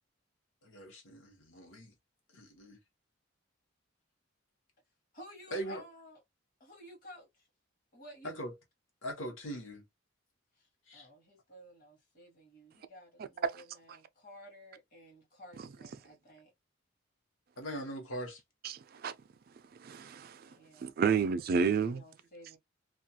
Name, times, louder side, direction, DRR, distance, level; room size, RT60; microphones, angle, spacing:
voice 1, 0.6-1.9 2.3-2.8 5.5-5.8 8.2-8.5 9.0-9.8 10.9-11.1 17.6-18.4, right 1 dB, 75° left, 0.9 m, -41 dB
voice 2, 5.1-6.2 6.6-7.5 7.9-8.4 10.6-16.5 20.4-21.4 21.7-22.6, equal, 45° left, 1.0 m, -54 dB
voice 3, 18.6-19.1 19.8-20.4 20.8-22.0, right 6 dB, 45° right, 0.3 m, -30 dB
2.3 x 2.3 x 2.7 m
head